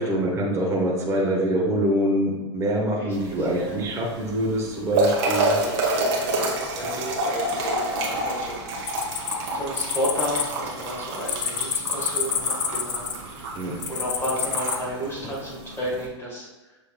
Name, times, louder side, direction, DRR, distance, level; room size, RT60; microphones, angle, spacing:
voice 1, 0.0-5.6 13.5-13.8, right 1 dB, 20° right, -3 dB, 1.1 m, -24 dB
voice 2, 3.0-3.8 5.5-9.3 9.5-13.1 13.9-16.8, equal, 15° left, -4 dB, 1.4 m, -32 dB
sound 1, 3.1-16.1, right 2 dB, 55° right, 1.3 m, -29 dB
sound 2, 8.9-10.4 10.7-13.3 13.8-14.8, left 7 dB, 85° left, 0.6 m, -28 dB
6.8 x 3.5 x 2.3 m, 1.2 s
hypercardioid pair, 115°, 15 cm